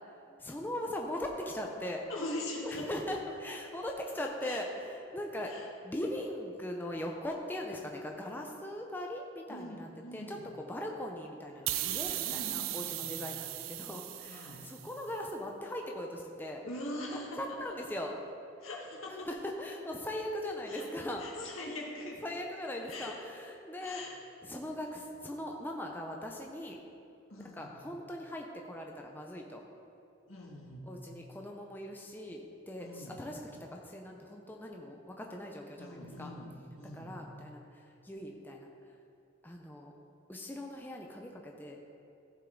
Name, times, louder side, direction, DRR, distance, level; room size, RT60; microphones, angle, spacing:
voice 1, 0.4-2.0 2.6-5.5 5.8-16.6 17.4-18.1 19.3-21.5 22.2-24.0 24.4-26.8 27.5-29.6 30.9-36.3 36.9-37.6 38.0-38.7 39.4-39.9 40.3-41.8, left 1 dB, 10° left, 1 dB, 0.6 m, -40 dB
voice 2, 2.1-2.9 4.4-4.6 5.4-5.7 9.5-10.5 12.2-13.2 14.3-14.7 16.6-17.8 18.6-19.3 20.7-20.9 21.2-22.2 22.9-23.2 23.7-24.2 27.3-27.7 30.3-30.9 32.8-33.2 35.8-37.2, left 1 dB, 85° left, -2 dB, 1.8 m, -42 dB
sound 1, 11.7-15.0, right 14 dB, 85° right, 0.4 m, -37 dB
14.5 x 5.5 x 3.8 m, 2.8 s
head